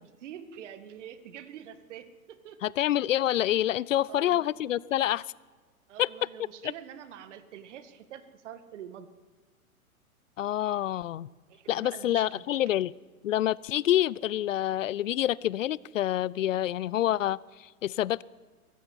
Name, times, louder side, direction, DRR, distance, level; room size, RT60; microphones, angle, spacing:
voice 1, 0.0-2.8 4.1-4.5 5.9-9.1 11.5-12.4, right 9 dB, 55° right, 11 dB, 2.1 m, -45 dB
voice 2, 2.6-5.2 6.0-6.1 6.6-6.7 10.4-11.3 11.7-12.9 13.2-18.2, left 12 dB, 60° left, 23 dB, 0.6 m, -27 dB
21.0 x 14.5 x 9.7 m, 1.4 s
figure-of-eight pair, 110°, 43 cm